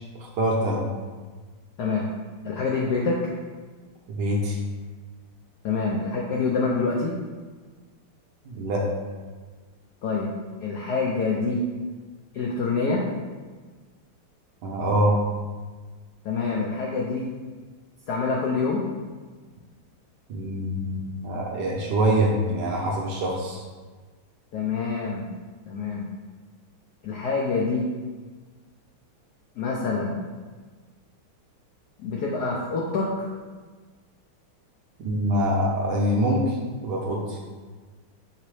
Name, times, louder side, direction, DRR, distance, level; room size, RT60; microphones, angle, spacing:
voice 1, 0.2-0.9 4.1-4.6 8.5-8.8 14.6-15.2 20.3-23.6 35.0-36.6 36.8-37.4, right 1 dB, 70° right, -2 dB, 1.1 m, -24 dB
voice 2, 1.8-2.1 2.4-3.2 5.6-7.1 10.0-10.3 10.6-11.6 12.3-13.0 16.2-17.3 18.1-18.8 24.5-25.3 25.7-26.1 27.0-27.9 29.5-30.2 32.0-33.1, left 4 dB, 85° left, -2 dB, 0.8 m, -26 dB
5.5 x 2.0 x 4.6 m, 1.4 s
omnidirectional pair, 2.3 m